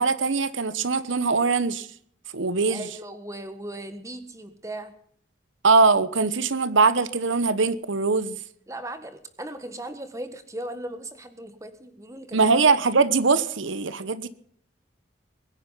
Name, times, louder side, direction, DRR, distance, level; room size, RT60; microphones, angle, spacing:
voice 1, 0.0-1.9 2.3-2.9 5.6-8.4 12.3-14.3, right 4 dB, 85° right, 1.0 m, -21 dB
voice 2, 2.7-4.9 8.7-12.4, right 1 dB, 15° right, 1.5 m, -37 dB
22.5 x 10.5 x 5.6 m
head